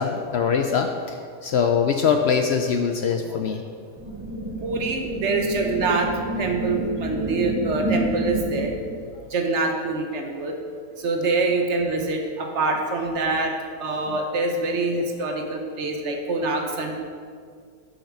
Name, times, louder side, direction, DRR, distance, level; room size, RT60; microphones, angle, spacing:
voice 1, 0.0-3.7 14.1-14.2, left 6 dB, 65° left, 5 dB, 0.7 m, -23 dB
sound 1, 4.0-9.0, right 2 dB, 15° right, 0.9 m, -29 dB
voice 2, 4.6-6.1 6.4-8.7 9.3-10.6 11.0-17.0, right 3 dB, 60° right, 3 dB, 1.1 m, -25 dB
7.4 x 5.9 x 5.9 m, 2.1 s
omnidirectional pair, 1.4 m